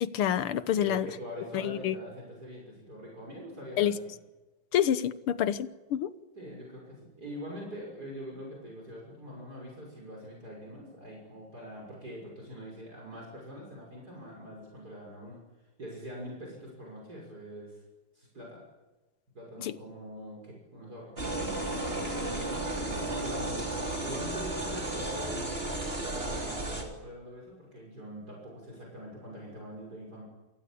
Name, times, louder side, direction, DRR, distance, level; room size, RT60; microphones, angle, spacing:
voice 1, 0.0-1.1 1.5-1.9 3.8-3.9 4.7-6.1 19.6-19.7, left 10 dB, 85° left, 15 dB, 1.9 m, -28 dB
voice 2, 0.7-4.1 6.3-15.4 15.8-17.8 18.1-18.6 19.3-21.8 22.1-22.3 22.8-25.6 26.0-30.2, equal, 45° right, -2 dB, 6.6 m, -44 dB
sound 1, 21.2-26.8, right 2 dB, 25° right, 4.0 m, -33 dB
28.5 x 18.5 x 8.6 m, 1.1 s
omnidirectional pair, 2.3 m